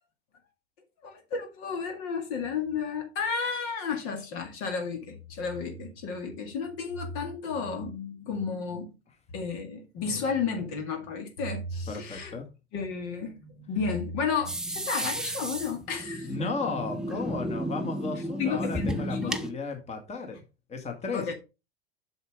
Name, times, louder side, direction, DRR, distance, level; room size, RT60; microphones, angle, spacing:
voice 1, 1.0-8.9 9.3-12.4 12.7-16.3 18.4-19.4 21.1-21.3, left 5 dB, 45° left, 2.1 m, -32 dB
voice 2, 11.9-12.5 16.2-20.4 20.7-21.3, left 4 dB, 20° left, 2.0 m, -34 dB
sound 1, 14.5-19.5, equal, ahead, 0.8 m, -33 dB
7.8 x 6.8 x 3.5 m
figure-of-eight pair, 85°, 31 cm